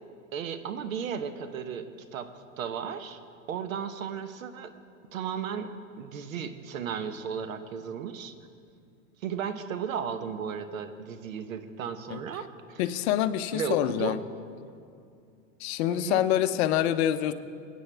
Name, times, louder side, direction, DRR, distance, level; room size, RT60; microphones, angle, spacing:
voice 1, 0.3-1.9 2.1-3.2 3.5-4.7 5.1-8.3 9.2-12.8 13.5-14.2 15.9-16.2, right 7 dB, 85° right, 9 dB, 1.0 m, -35 dB
voice 2, 12.8-14.2 15.6-17.3, left 12 dB, 55° left, 12 dB, 0.7 m, -26 dB
22.0 x 9.1 x 3.4 m, 2.4 s
hypercardioid pair, 125°, 39 cm